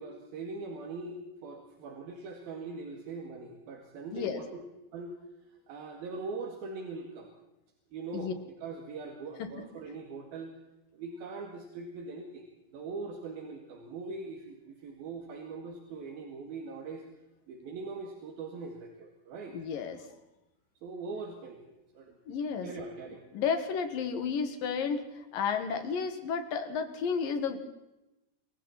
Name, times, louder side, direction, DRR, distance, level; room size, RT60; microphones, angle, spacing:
voice 1, 0.0-4.5 4.9-5.2 5.7-7.3 7.9-10.5 10.9-12.5 12.7-17.0 17.5-19.6 20.8-22.1 22.6-23.3, right 3 dB, 75° right, 3 dB, 3.9 m, -41 dB
voice 2, 19.5-20.1 22.3-22.7 23.3-27.6, left 6 dB, 70° left, 8 dB, 3.6 m, -32 dB
27.5 x 23.5 x 4.3 m, 0.95 s
omnidirectional pair, 4.3 m